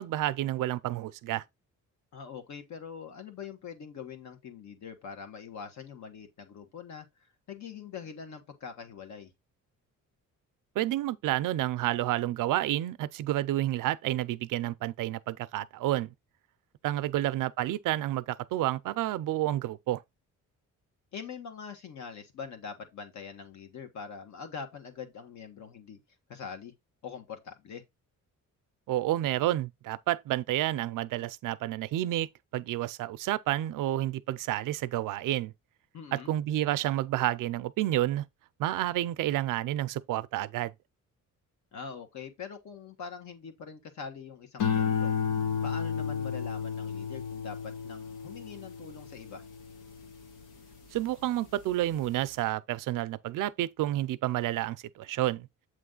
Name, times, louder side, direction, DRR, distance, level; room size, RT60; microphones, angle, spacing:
voice 1, 0.0-1.4 10.8-16.1 16.8-20.0 28.9-32.3 32.5-35.5 36.1-38.2 38.6-40.7 50.9-55.5, right 14 dB, 80° right, 0.5 m, -30 dB
voice 2, 2.1-9.3 17.1-17.3 21.1-26.0 26.3-26.7 27.0-27.8 35.9-36.3 41.7-49.4, left 6 dB, 60° left, 1.4 m, -43 dB
sound 1, 44.6-51.1 51.6-52.1, left 7 dB, 80° left, 1.4 m, -32 dB
7.8 x 3.2 x 3.8 m
cardioid pair, 150°, 31 cm